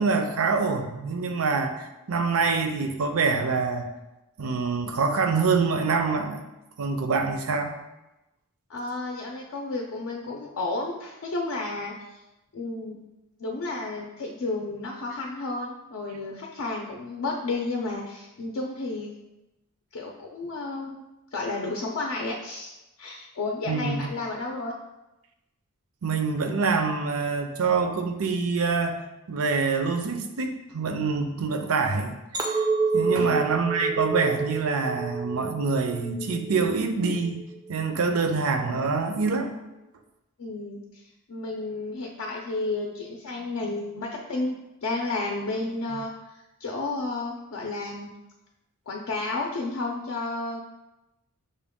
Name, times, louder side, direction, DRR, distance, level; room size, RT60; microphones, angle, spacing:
voice 1, 0.0-3.9 4.4-6.4 6.8-7.7 23.7-24.1 26.0-29.0 29.3-32.6 32.9-37.4 37.7-39.5, right 4 dB, 65° right, 6 dB, 0.5 m, -25 dB
voice 2, 8.7-12.2 12.5-13.0 13.4-19.1 19.9-21.0 21.3-22.7 23.0-24.7 33.2-33.4 40.4-41.0 41.3-44.6 44.8-46.1 46.6-48.1 48.9-50.6, left 3 dB, 65° left, 0 dB, 0.5 m, -32 dB
Chink clink, 32.3-36.7 37.1-37.6, right 4 dB, 20° right, 0.4 m, -28 dB
6.3 x 2.2 x 3.5 m, 0.97 s
head